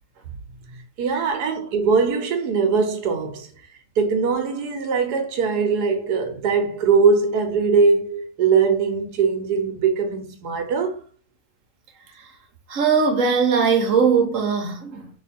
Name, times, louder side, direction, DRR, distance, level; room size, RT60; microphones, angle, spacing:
voice 1, 1.0-3.5 4.0-11.0, right 5 dB, 80° right, 1.3 m, -21 dB
voice 2, 12.7-15.2, right 5 dB, 60° right, 1.2 m, -20 dB
3.1 x 3.1 x 4.2 m
omnidirectional pair, 1.7 m